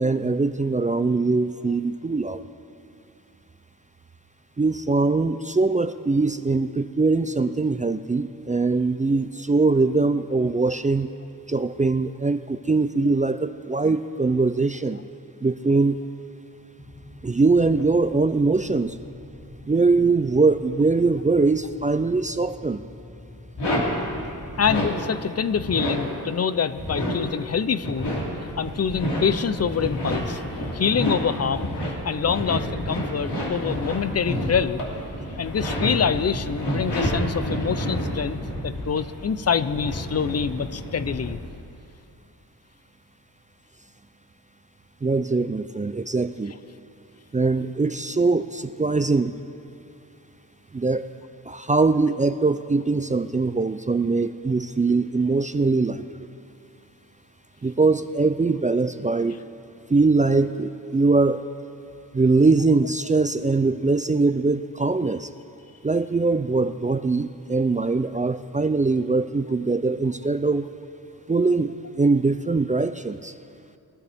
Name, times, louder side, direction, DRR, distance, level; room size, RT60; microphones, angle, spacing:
voice 1, 0.0-2.4 4.6-11.1 11.5-15.0 15.4-16.0 17.2-18.9 19.7-22.8 45.0-46.5 47.3-49.3 50.7-51.1 51.5-56.3 57.6-59.4 59.9-61.5 62.1-65.3 65.8-70.7 71.3-73.3, right 3 dB, 20° right, 11 dB, 0.3 m, -22 dB
sound 1, 16.8-24.0, left 1 dB, 55° left, 2.2 m, -45 dB
sound 2, 23.6-24.9 25.3-26.0 26.6-41.3, equal, 80° left, 3.1 m, -29 dB
voice 2, 24.6-28.1 28.6-30.4 30.7-31.7 32.0-34.8 35.4-41.4, left 7 dB, 40° left, 14 dB, 0.5 m, -25 dB
22.0 x 13.5 x 3.5 m, 2.6 s
wide cardioid pair, 105°, 41 cm